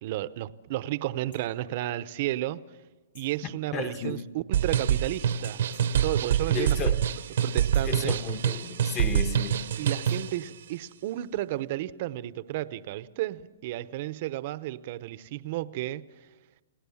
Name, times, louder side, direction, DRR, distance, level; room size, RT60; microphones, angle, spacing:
voice 1, 0.0-2.6 3.1-5.6 6.0-6.8 7.4-8.2 9.8-16.1, right 15 dB, 50° right, 0.8 m, -32 dB
sound 1, 1.3-1.5 3.1-3.4 5.7-6.0 7.7-8.0 10.0-10.4, left 6 dB, 80° left, 6.6 m, -54 dB
voice 2, 3.4-4.3 6.5-7.0 7.8-9.7, left 6 dB, 25° left, 1.4 m, -34 dB
sound 2, 4.5-10.4, right 9 dB, 70° right, 0.9 m, -26 dB
29.0 x 18.0 x 7.2 m
hypercardioid pair, 150°, 0 cm